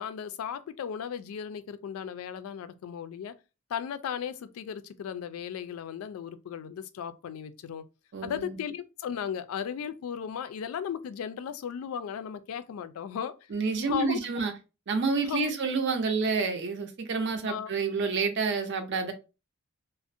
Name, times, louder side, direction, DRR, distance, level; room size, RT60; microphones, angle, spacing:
voice 1, 0.0-3.4 3.7-7.9 8.2-13.5 13.9-14.2 15.2-15.5 17.4-17.7, left 8 dB, 85° left, 0.3 m, -36 dB
voice 2, 8.1-8.6 13.5-14.5 14.9-19.1, right 4 dB, 55° right, 0.5 m, -29 dB
2.4 x 2.0 x 2.6 m
head